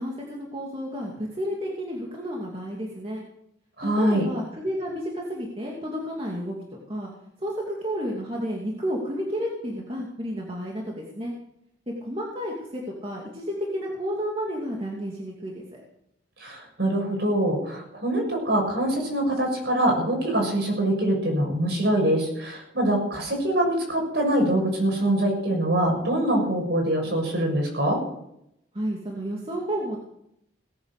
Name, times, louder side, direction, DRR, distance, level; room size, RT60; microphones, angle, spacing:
voice 1, 0.0-3.2 3.8-6.6 6.9-7.1 7.4-11.3 11.9-15.6 28.7-30.0, equal, 30° right, -2 dB, 2.6 m, -31 dB
voice 2, 3.8-4.3 16.4-28.0, right 1 dB, 60° right, 1 dB, 7.0 m, -24 dB
18.0 x 10.5 x 6.7 m, 0.77 s
head